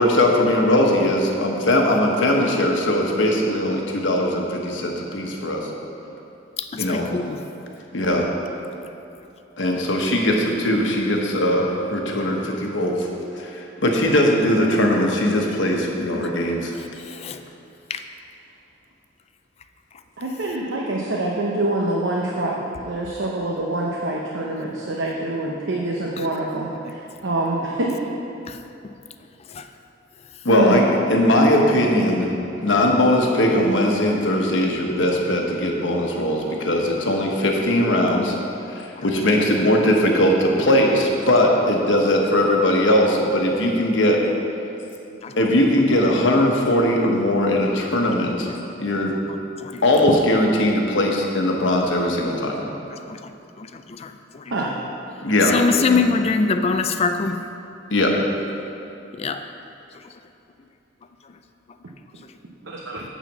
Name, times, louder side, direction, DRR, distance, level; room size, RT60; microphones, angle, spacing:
voice 1, 0.0-5.7 6.8-7.1 7.9-8.3 9.6-13.1 13.4-16.7 30.4-32.3 32.6-38.3 38.7-44.2 45.4-48.5 48.8-49.1 49.8-52.6 55.2-55.6 55.8-56.0 57.9-58.1, left 1 dB, 75° left, 0 dB, 1.1 m, -20 dB
voice 2, 6.6-7.4 17.0-17.4 17.9-18.0 26.2-26.3 28.5-28.6 29.5-29.7 39.0-39.1 45.2-45.4 49.3-49.8 50.1-50.2 52.9-53.3 53.6-54.5 55.4-57.4 59.1-59.4, left 4 dB, 35° left, 8 dB, 0.3 m, -24 dB
voice 3, 20.2-28.0 30.5-30.7 54.5-54.7 62.9-63.0, right 2 dB, 75° right, -2 dB, 0.8 m, -25 dB
9.1 x 4.2 x 7.3 m, 2.7 s
head